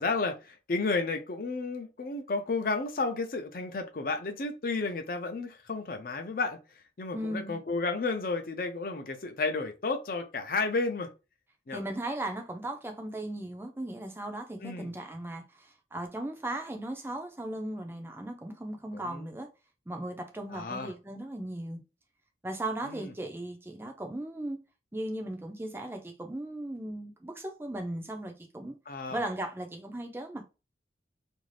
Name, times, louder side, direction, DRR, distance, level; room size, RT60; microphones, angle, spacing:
voice 1, 0.0-6.6 7.0-11.1 11.7-11.8 14.6-14.9 18.9-19.3 20.5-20.9 22.8-23.1 28.9-29.2, left 3 dB, 50° left, 0.5 m, -32 dB
voice 2, 7.1-7.6 11.7-19.5 19.9-21.8 22.4-24.6 24.9-28.8 29.1-30.5, right 1 dB, 15° right, 0.4 m, -37 dB
2.6 x 2.4 x 3.2 m
head